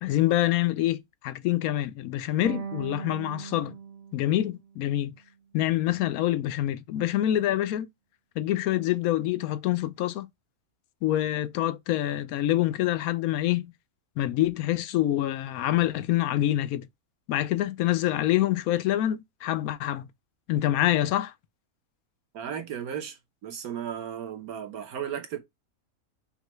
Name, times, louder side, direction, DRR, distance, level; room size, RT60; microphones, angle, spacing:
voice 1, 0.0-3.7 4.1-5.1 5.5-7.9 8.4-10.3 11.0-13.7 14.2-16.9 17.3-20.1 20.5-21.3, left 14 dB, 80° left, 1.0 m, -26 dB
sound 1, 2.4-5.6, right 6 dB, 60° right, 0.8 m, -40 dB
voice 2, 22.3-25.4, right 9 dB, 80° right, 1.5 m, -35 dB
5.5 x 2.3 x 3.0 m
omnidirectional pair, 1.5 m